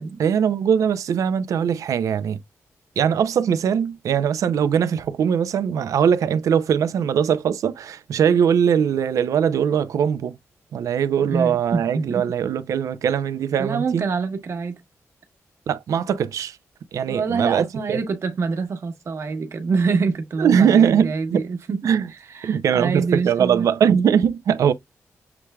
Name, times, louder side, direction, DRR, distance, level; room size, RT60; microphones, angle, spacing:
voice 1, 0.2-2.4 3.0-10.4 10.7-14.1 15.7-16.6 16.9-18.0 20.4-21.4 21.8-22.1 22.4-24.7, right 8 dB, 90° right, 0.5 m, -21 dB
voice 2, 11.2-12.3 13.6-14.8 17.1-21.9 22.3-23.7, right 4 dB, 60° right, 1.2 m, -25 dB
7.0 x 3.2 x 2.3 m
wide cardioid pair, 120°, 5 cm